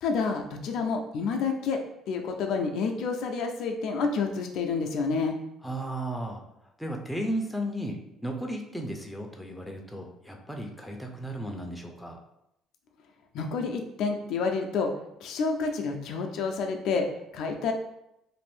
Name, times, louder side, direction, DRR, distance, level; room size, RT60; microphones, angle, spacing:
voice 1, 0.0-1.8 2.1-5.4 13.3-14.9 15.2-17.1 17.3-17.7, left 4 dB, 70° left, 4 dB, 0.4 m, -29 dB
voice 2, 5.6-6.4 6.8-12.2, right 1 dB, 5° left, 1 dB, 0.5 m, -34 dB
2.5 x 2.5 x 3.4 m, 0.82 s
supercardioid pair, 90°, 0 cm